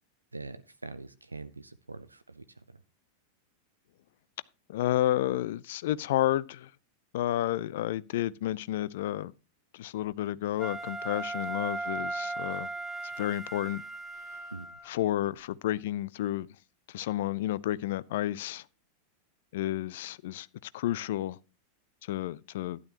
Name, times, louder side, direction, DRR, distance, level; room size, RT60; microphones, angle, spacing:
voice 1, 0.3-2.8 14.5-14.7, right 3 dB, 80° right, 0.5 m, -44 dB
voice 2, 4.7-6.7 7.1-9.3 9.7-12.7 13.2-13.8 14.9-16.5 16.9-18.6 19.5-20.5 20.7-21.4 22.1-22.8, left 13 dB, 55° left, 0.4 m, -31 dB
Wind instrument woodwind instrument, 10.6-14.9, right 2 dB, 5° left, 1.0 m, -37 dB
12.0 x 11.0 x 2.9 m
figure-of-eight pair, 90°, 0 cm